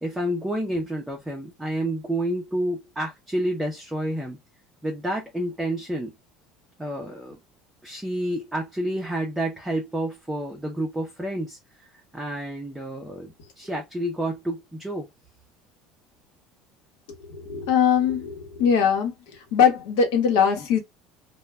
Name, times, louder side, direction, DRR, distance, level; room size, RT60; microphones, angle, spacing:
voice 1, 0.0-4.4 4.8-6.1 6.8-7.4 7.8-11.6 12.1-15.1, right 1 dB, 5° right, 0.5 m, -29 dB
voice 2, 17.3-19.1 19.5-20.8, left 7 dB, 85° left, 0.9 m, -21 dB
2.1 x 2.1 x 3.3 m
cardioid pair, 170°, 0 cm